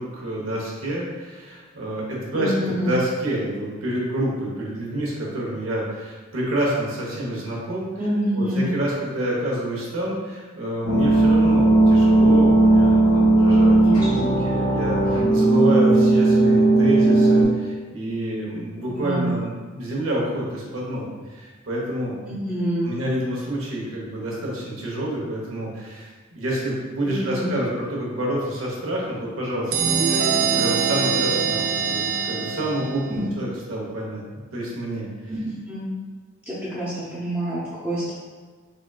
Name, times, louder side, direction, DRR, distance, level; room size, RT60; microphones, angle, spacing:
voice 1, 0.0-7.9 8.3-22.1 22.8-34.2 34.5-35.3, right 1 dB, 80° right, -4 dB, 0.9 m, -28 dB
voice 2, 2.3-2.9 8.0-8.7 13.8-14.4 18.9-19.3 22.3-22.9 27.0-27.5 33.1-33.2 35.3-35.4 35.7-35.9 36.5-38.1, right 1 dB, 10° right, -10 dB, 0.6 m, -27 dB
sound 1, 10.8-17.4, right 2 dB, 75° left, 1.0 m, -16 dB
sound 2, 29.7-33.3, right 6 dB, 50° right, 0.3 m, -23 dB
3.6 x 3.4 x 2.3 m, 1.4 s
head